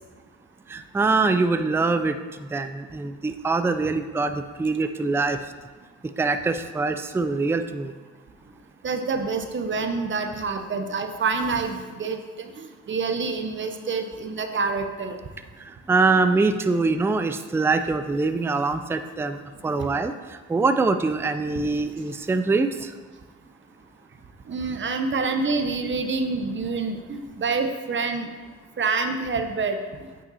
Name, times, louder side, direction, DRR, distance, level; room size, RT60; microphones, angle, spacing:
voice 1, 0.7-5.4 6.2-7.9 15.9-20.1 20.5-22.9, right 3 dB, 10° right, 9 dB, 0.4 m, -24 dB
voice 2, 8.8-15.2 24.5-28.3 28.8-29.8, right 4 dB, 40° right, 6 dB, 0.9 m, -27 dB
8.6 x 5.6 x 4.1 m, 1.4 s
cardioid pair, 90°, 30 cm